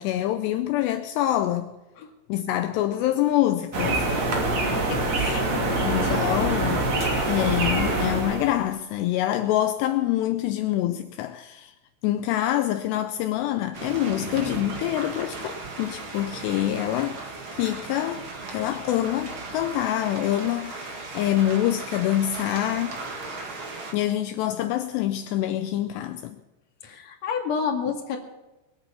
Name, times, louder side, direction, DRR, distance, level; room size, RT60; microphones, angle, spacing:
voice 1, 0.0-1.7 2.3-4.1 5.8-6.9 7.3-11.7 12.0-17.2 17.5-18.2 18.5-23.0 23.9-26.4, left 13 dB, 85° left, 2.4 m, -25 dB
sound 1, 3.7-8.6, right 2 dB, 40° right, 3.1 m, -25 dB
voice 2, 4.9-6.3 26.8-28.2, left 6 dB, 45° left, 2.6 m, -31 dB
sound 2, 13.7-23.9, right 3 dB, 60° right, 1.3 m, -36 dB
22.0 x 9.0 x 6.9 m
omnidirectional pair, 5.7 m